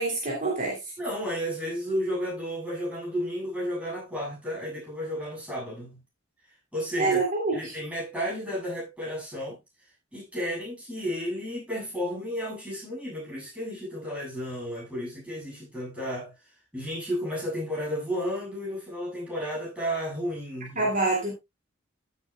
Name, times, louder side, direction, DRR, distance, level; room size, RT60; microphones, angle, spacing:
voice 1, 0.0-0.9 7.0-7.7 20.7-21.3, right 3 dB, 40° right, 3.1 m, -26 dB
voice 2, 1.0-6.0 6.7-7.2 7.5-9.6 10.1-16.3 16.7-20.9, equal, 5° right, 7.7 m, -32 dB
15.0 x 8.1 x 2.3 m
head